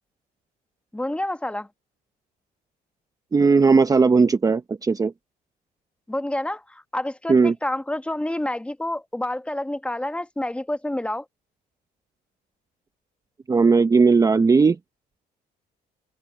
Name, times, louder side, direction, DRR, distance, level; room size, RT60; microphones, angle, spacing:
voice 1, 0.9-1.7 6.1-11.2, left 1 dB, 5° left, 1.3 m, -28 dB
voice 2, 3.3-5.1 7.3-7.5 13.5-14.8, right 4 dB, 20° right, 0.7 m, -17 dB
cardioid pair, 110°, 17 cm